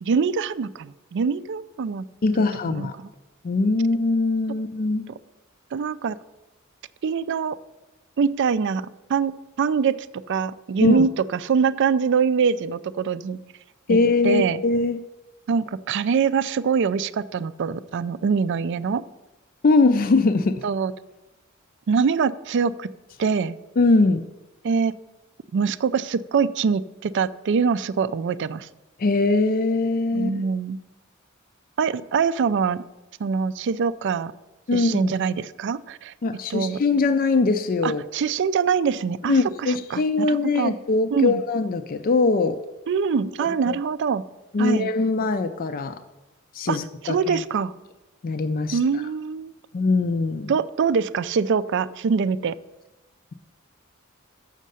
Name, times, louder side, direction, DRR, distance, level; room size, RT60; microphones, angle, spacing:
voice 1, 0.0-2.1 2.7-2.9 5.7-6.2 7.0-7.6 8.2-9.3 9.6-9.9 10.3-13.4 13.9-14.0 14.2-14.6 15.5-19.0 20.6-20.9 21.9-22.9 23.2-23.5 24.6-24.9 25.5-28.7 30.1-30.8 31.8-32.8 33.2-34.3 34.7-36.1 36.5-36.8 37.8-40.7 41.1-41.4 42.9-44.2 44.6-44.9 46.7-46.8 47.0-47.7 48.7-49.5 50.5-52.6, right 6 dB, 60° right, 15 dB, 0.4 m, -24 dB
voice 2, 2.2-2.9 3.4-5.1 10.8-11.0 13.9-15.0 19.6-20.6 23.8-24.2 29.0-30.3 34.7-35.1 36.2-38.0 39.3-42.6 43.7-43.8 44.5-46.0 46.5-47.4 48.2-48.8 49.7-50.5, left 3 dB, 45° left, 9 dB, 0.4 m, -21 dB
7.3 x 6.5 x 6.7 m, 1.0 s
head